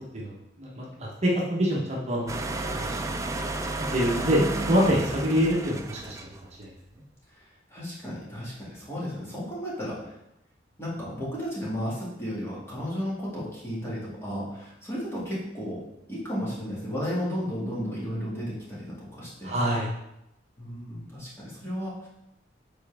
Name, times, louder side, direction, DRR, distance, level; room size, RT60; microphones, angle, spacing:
voice 1, 0.0-2.3 2.7-3.2 3.9-4.4 4.7-6.3 6.6-6.7 19.4-19.9, equal, 35° right, -4 dB, 1.1 m, -26 dB
sound 1, 2.3-6.5, right 2 dB, 15° right, 0.4 m, -32 dB
voice 2, 4.2-4.7 7.3-10.1 10.8-15.8 16.1-19.5 20.6-22.1, equal, 15° left, -7 dB, 2.1 m, -34 dB
7.4 x 4.3 x 3.5 m, 0.87 s
head